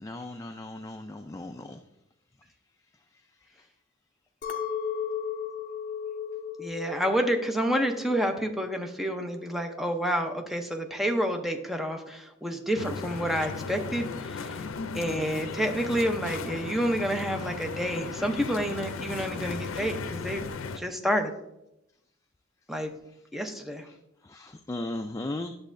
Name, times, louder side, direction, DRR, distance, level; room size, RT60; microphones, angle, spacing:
voice 1, 0.0-1.8 24.2-25.5, left 2 dB, 15° left, 6 dB, 0.3 m, -36 dB
Chink clink, 4.4-8.8 9.2-9.8, left 7 dB, 40° left, 0.7 m, -36 dB
voice 2, 6.6-14.6 14.9-20.4 20.8-21.3 22.7-22.9 23.3-23.9, equal, ahead, 4 dB, 0.7 m, -29 dB
sound 1, 12.8-20.8, left 4 dB, 85° left, 0.5 m, -36 dB
10.5 x 7.2 x 2.6 m, 0.84 s
head